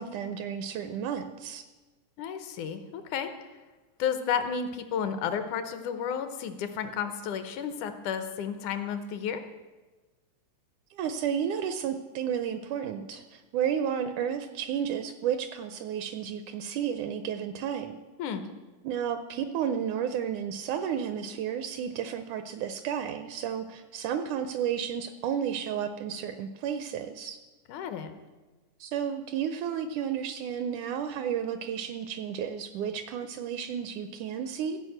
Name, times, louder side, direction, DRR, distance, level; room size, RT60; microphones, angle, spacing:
voice 1, 0.0-1.6 10.9-18.0 18.8-27.4 28.8-34.8, right 8 dB, 80° right, 10 dB, 1.9 m, -32 dB
voice 2, 2.2-3.5 4.0-9.4 18.2-18.4 27.7-28.1, left 7 dB, 75° left, 9 dB, 2.2 m, -32 dB
15.5 x 5.2 x 7.8 m, 1.2 s
omnidirectional pair, 3.8 m